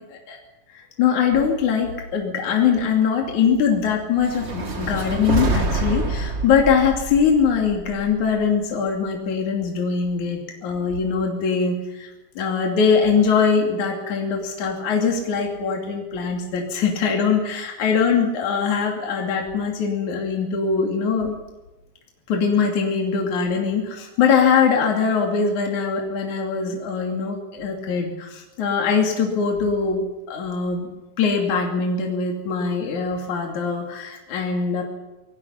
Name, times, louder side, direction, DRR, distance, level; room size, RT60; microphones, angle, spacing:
voice 1, 0.7-21.4 22.3-30.9 31.2-34.8, left 6 dB, 60° left, 1 dB, 4.0 m, -22 dB
sound 1, 4.2-8.4, right 2 dB, 25° right, 1.5 m, -26 dB
27.0 x 20.0 x 5.8 m, 1.0 s
omnidirectional pair, 4.0 m